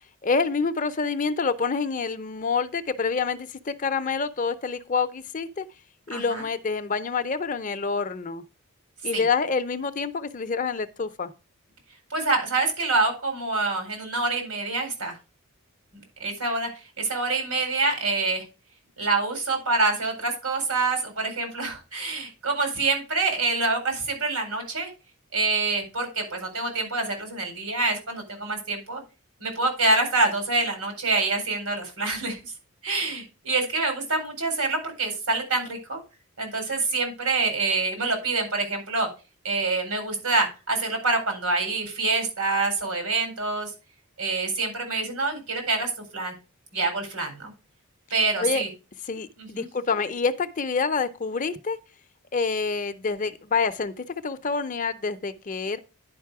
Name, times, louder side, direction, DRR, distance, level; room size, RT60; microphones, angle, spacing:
voice 1, 0.2-5.6 6.1-8.4 9.0-11.3 48.4-48.6 49.1-51.8 52.3-55.8, left 5 dB, 35° left, 0.6 m, -27 dB
voice 2, 6.1-6.4 9.1-9.3 12.1-15.2 15.9-16.7 17.0-18.4 19.0-24.9 25.3-29.0 29.4-32.4 32.8-36.0 36.4-39.1 39.4-43.7 44.2-46.3 46.7-47.5 48.1-48.7 49.4-49.7, right 3 dB, 85° right, 4.2 m, -26 dB
10.5 x 5.2 x 4.7 m
head